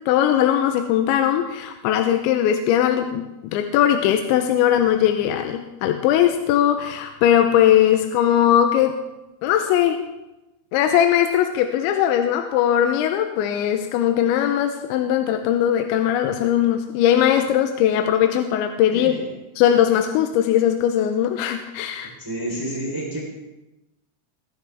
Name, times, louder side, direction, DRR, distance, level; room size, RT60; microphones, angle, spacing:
voice 1, 0.1-8.9 9.4-10.0 10.7-19.1 19.6-22.1, left 10 dB, 85° left, 6 dB, 3.0 m, -19 dB
voice 2, 18.9-19.3 22.2-23.2, right 1 dB, 5° right, -3 dB, 3.1 m, -29 dB
21.5 x 10.5 x 3.6 m, 1.0 s
omnidirectional pair, 5.4 m